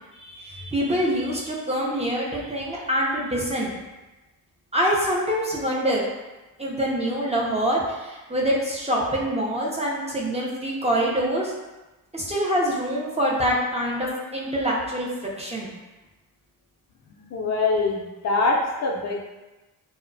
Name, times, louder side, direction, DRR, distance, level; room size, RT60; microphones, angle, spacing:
voice 1, 0.1-3.7 4.7-6.0 6.6-11.5 12.1-15.7, equal, 20° right, -4 dB, 0.5 m, -25 dB
voice 2, 17.3-19.3, left 3 dB, 45° left, -1 dB, 0.4 m, -24 dB
2.6 x 2.1 x 2.5 m, 1.1 s
cardioid pair, 80°, 37 cm